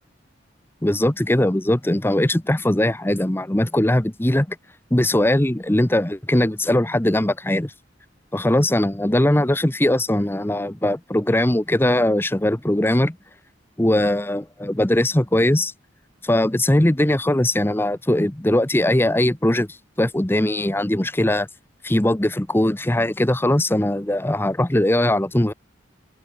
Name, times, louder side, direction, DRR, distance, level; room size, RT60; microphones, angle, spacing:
voice 1, 0.8-4.6 4.9-7.7 8.3-13.2 13.8-15.7 16.2-19.7 20.0-21.5 21.8-25.5, left 1 dB, 10° left, 0.8 m, -20 dB
open air
head